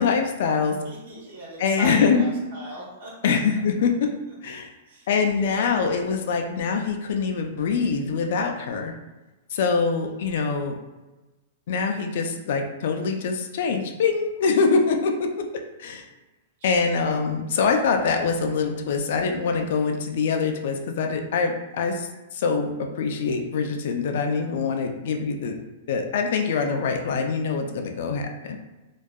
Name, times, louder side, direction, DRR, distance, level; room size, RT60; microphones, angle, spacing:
voice 1, 0.0-0.8 1.6-2.2 3.2-4.1 4.4-4.7 5.1-8.9 9.5-10.8 11.7-15.5 15.8-16.0 16.6-25.6 25.9-28.6, left 5 dB, 60° left, 4 dB, 0.3 m, -24 dB
voice 2, 0.8-3.3 4.8-5.5 10.0-10.1 16.6-17.1, right 2 dB, 65° right, -4 dB, 1.0 m, -39 dB
2.6 x 2.2 x 2.3 m, 1.1 s
hypercardioid pair, 155°, 0 cm